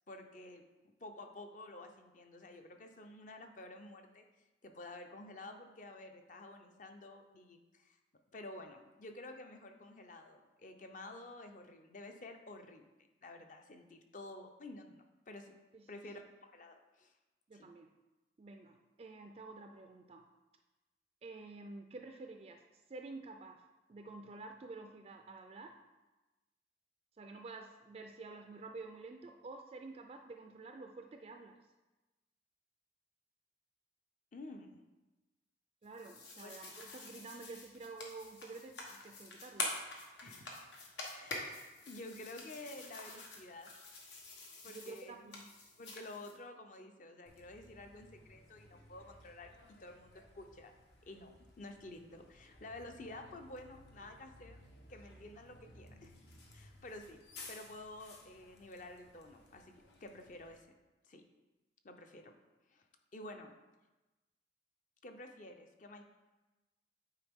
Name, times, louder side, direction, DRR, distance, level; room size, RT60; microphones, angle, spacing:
voice 1, 0.1-0.6 1.0-4.2 4.6-8.0 8.3-12.9 13.2-15.5 15.9-17.1 17.5-17.7 34.3-34.8 36.4-36.6 40.2-40.5 41.1-43.7 44.6-45.1 45.8-50.7 51.1-54.6 54.9-56.1 56.5-57.2 57.5-60.7 61.0-61.2 61.8-62.3 62.7-62.9 63.1-63.5 65.0-66.0, left 2 dB, 45° left, 5 dB, 0.6 m, -51 dB
voice 2, 15.7-16.1 17.5-17.9 18.4-20.3 21.2-22.6 22.9-23.6 23.9-25.8 27.2-31.6 35.8-39.7 44.7-45.5, right 3 dB, 35° right, 4 dB, 0.3 m, -50 dB
sound 1, 35.8-46.3, left 2 dB, 90° left, 1.3 m, -46 dB
Bus, 47.3-60.6, left 2 dB, 70° left, 1.0 m, -58 dB
9.0 x 4.1 x 3.6 m, 1.1 s
head